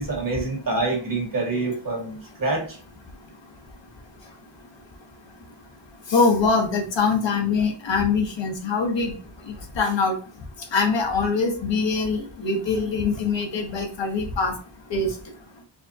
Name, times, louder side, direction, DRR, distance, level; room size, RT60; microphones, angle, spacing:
voice 1, 0.0-2.6, right 3 dB, 45° right, 0 dB, 1.4 m, -26 dB
voice 2, 6.1-9.1 9.8-10.1 10.7-14.5 14.9-15.1, left 4 dB, 70° left, 2 dB, 1.0 m, -23 dB
5.1 x 2.2 x 2.6 m, 0.39 s
wide cardioid pair, 110°, 45 cm